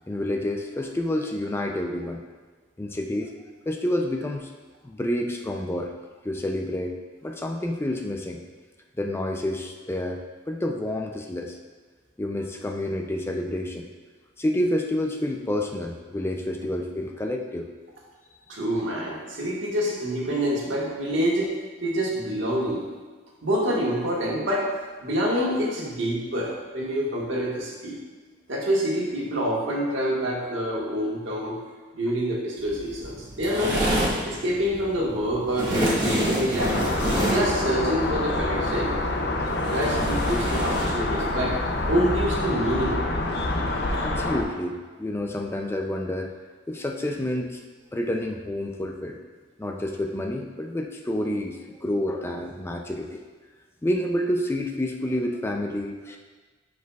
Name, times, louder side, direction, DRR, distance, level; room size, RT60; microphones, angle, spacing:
voice 1, 0.1-2.2 2.8-3.3 3.7-4.5 4.8-5.9 6.2-7.0 7.2-8.4 9.0-11.6 12.2-13.9 14.4-17.7 44.0-46.3 46.7-47.6 47.9-49.2 49.6-53.2 53.8-56.2, left 1 dB, 15° left, 2 dB, 0.4 m, -29 dB
voice 2, 18.5-21.5 21.8-22.9 23.4-24.7 25.0-28.0 28.5-31.6 31.9-33.9 34.2-36.8 37.3-38.9 39.7-41.6 41.9-43.0, equal, 80° right, -4 dB, 1.5 m, -26 dB
sound 1, 32.6-42.1, equal, 25° right, 1.7 m, -29 dB
sound 2, 36.6-44.4, left 2 dB, 60° left, 0.6 m, -26 dB
10.5 x 4.8 x 2.3 m, 1.4 s
head